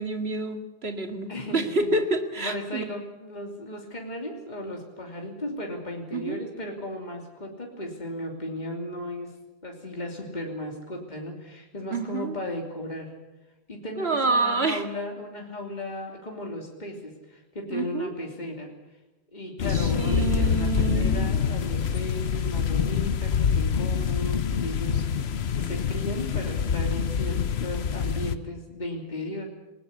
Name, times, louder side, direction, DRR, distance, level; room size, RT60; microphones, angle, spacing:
voice 1, 0.0-2.8 6.1-6.4 11.9-12.4 14.0-14.8 17.7-18.1 19.7-21.3, right 3 dB, 70° right, 7 dB, 2.3 m, -28 dB
voice 2, 1.3-1.9 2.4-9.3 9.6-13.1 13.7-18.7 19.3-29.4, left 1 dB, 45° left, 2 dB, 3.2 m, -36 dB
sound 1, 19.6-28.3, left 7 dB, 75° left, 1.2 m, -26 dB
20.0 x 20.0 x 8.2 m, 1.0 s
omnidirectional pair, 1.1 m